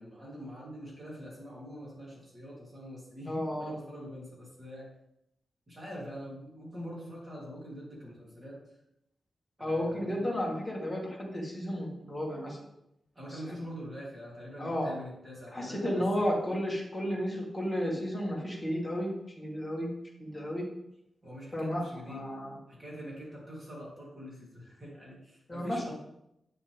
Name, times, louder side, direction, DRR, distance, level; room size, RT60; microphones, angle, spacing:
voice 1, 0.0-4.9 5.7-8.6 9.6-10.3 13.1-16.2 21.2-22.4 22.7-25.9, equal, 25° right, -5 dB, 3.4 m, -44 dB
voice 2, 3.3-3.7 9.6-12.6 14.6-14.9 15.5-19.9 20.2-20.7 21.5-22.6 25.5-25.8, equal, 10° left, -3 dB, 2.0 m, -33 dB
8.7 x 7.0 x 3.6 m, 0.82 s
wide cardioid pair, 160°, 0 cm